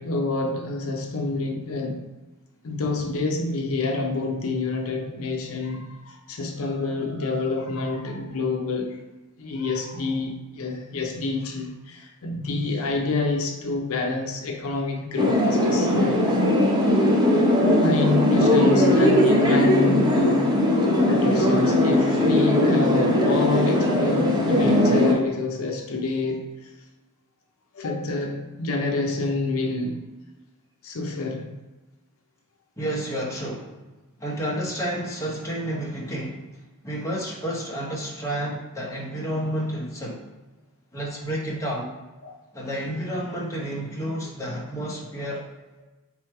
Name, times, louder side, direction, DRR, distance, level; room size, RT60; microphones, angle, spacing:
voice 1, 0.0-2.0 2.6-9.0 9.4-16.3 17.7-20.5 21.1-26.7 27.7-30.0 30.8-31.5 42.2-42.4, left 3 dB, 65° left, 1 dB, 0.6 m, -27 dB
sound 1, 15.2-25.1, left 1 dB, 20° right, 0.7 m, -19 dB
voice 2, 32.8-33.8 34.2-36.5 36.8-40.3 40.9-41.9 42.5-45.4, right 1 dB, 15° left, -4 dB, 0.9 m, -30 dB
3.7 x 3.1 x 4.5 m, 1.1 s
head